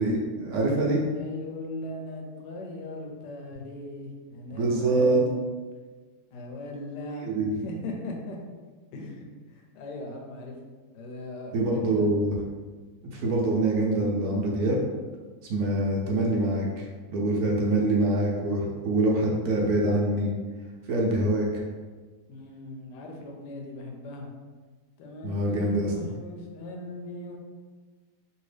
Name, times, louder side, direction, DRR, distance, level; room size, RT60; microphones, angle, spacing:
voice 1, 0.0-1.0 4.5-5.2 7.2-7.5 11.5-12.3 13.1-14.8 15.5-16.8 17.1-20.3 20.9-21.6 25.2-25.9, right 2 dB, 70° right, -1 dB, 1.0 m, -25 dB
voice 2, 1.1-5.2 6.3-7.3 7.6-8.4 8.9-10.6 10.9-12.1 22.3-24.3 25.0-27.4, left 2 dB, 90° left, 1 dB, 1.2 m, -39 dB
2.9 x 2.7 x 3.2 m, 1.4 s
omnidirectional pair, 1.8 m